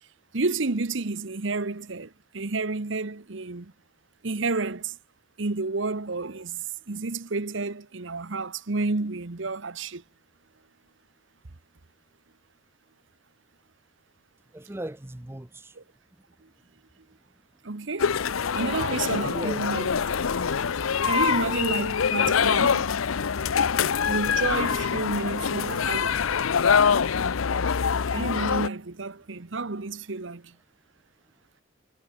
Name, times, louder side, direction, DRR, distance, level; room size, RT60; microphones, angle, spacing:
voice 1, 0.3-3.7 4.2-5.0 5.4-10.0 15.8-15.9 16.4-16.5 17.6-18.1 18.5-20.0 21.0-22.9 24.0-26.2 28.1-30.6, right 3 dB, 65° right, 1.1 m, -30 dB
voice 2, 14.5-15.8 19.2-19.6 21.1-21.4, right 1 dB, 10° right, 0.6 m, -38 dB
sound 1, 18.0-28.7, left 6 dB, 90° left, 0.7 m, -24 dB
head